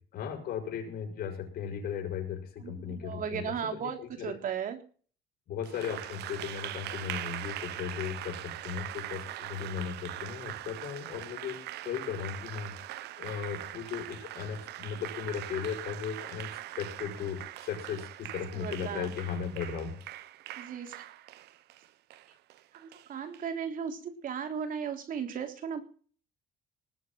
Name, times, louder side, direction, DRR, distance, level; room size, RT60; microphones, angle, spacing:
voice 1, 0.1-4.3 5.5-11.6 11.8-20.0, left 7 dB, 65° left, 3 dB, 6.4 m, -37 dB
voice 2, 2.6-4.8 5.8-6.0 18.5-19.1 20.6-21.0 22.7-25.8, right 7 dB, 55° right, 7 dB, 3.3 m, -36 dB
Applause, 5.6-23.5, right 14 dB, 80° right, 1.0 m, -42 dB
20.0 x 6.7 x 7.8 m, 0.44 s
cardioid pair, 110°, 17 cm